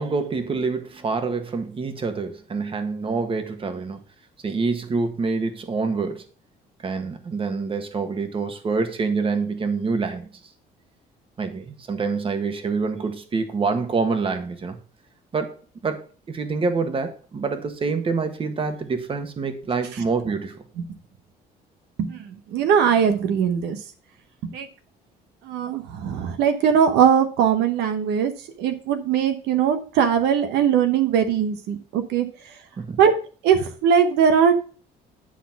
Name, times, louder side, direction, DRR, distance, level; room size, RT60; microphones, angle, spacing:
voice 1, 0.0-4.0 4.4-6.2 6.8-10.3 11.4-14.8 15.3-15.5 15.8-20.6 32.8-33.0, right 4 dB, 30° right, 1.4 m, -26 dB
voice 2, 22.5-23.8 24.5-24.7 25.5-28.3 28.6-32.3 33.0-33.1 33.4-34.5, right 7 dB, 85° right, 1.0 m, -20 dB
10.0 x 4.1 x 5.9 m
cardioid pair, 110°, 17 cm